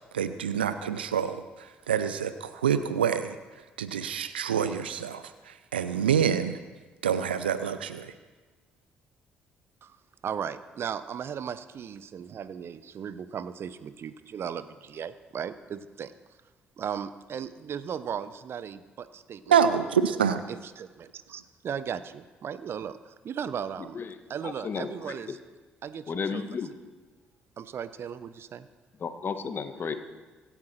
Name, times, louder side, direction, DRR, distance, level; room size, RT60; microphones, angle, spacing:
voice 1, 0.1-1.4 1.9-3.3 3.8-6.6 7.0-8.1 19.5-20.4, right 8 dB, 85° right, 12 dB, 0.7 m, -26 dB
voice 2, 10.2-16.1 16.8-19.6 20.1-24.0 24.3-25.4 25.8-26.4 27.6-28.7, right 8 dB, 50° right, 15 dB, 0.8 m, -37 dB
voice 3, 23.9-25.4 26.1-26.7 29.0-29.9, left 5 dB, 40° left, 8 dB, 1.7 m, -34 dB
24.5 x 10.5 x 4.5 m, 1.3 s
figure-of-eight pair, 45°, 5 cm